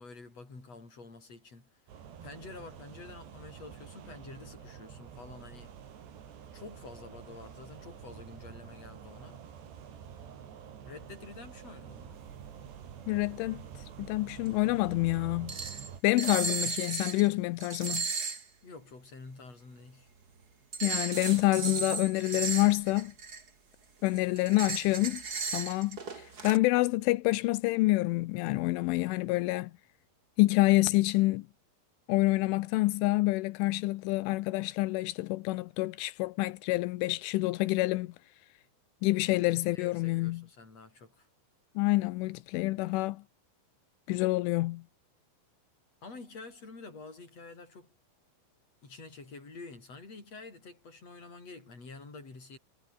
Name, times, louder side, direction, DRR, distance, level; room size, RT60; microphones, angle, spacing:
voice 1, 0.0-5.8 6.5-9.5 10.8-12.3 18.6-20.1 39.1-39.3 39.7-41.3 46.0-47.9 48.8-52.6, left 3 dB, 30° left, 8.0 m, -48 dB
sound 1, 1.9-16.0, right 8 dB, 65° right, 5.2 m, -48 dB
voice 2, 13.1-15.6 16.0-18.1 20.8-23.1 24.0-25.2 25.5-29.7 30.4-31.5 32.1-38.1 39.0-40.4 41.8-43.2 44.1-44.8, left 20 dB, 85° left, 3.3 m, -27 dB
sound 2, 14.5-14.6 15.5-15.9 16.2-17.3 17.6-18.4 20.7-23.5 24.0-26.6, right 5 dB, 35° right, 1.7 m, -35 dB
omnidirectional pair, 5.5 m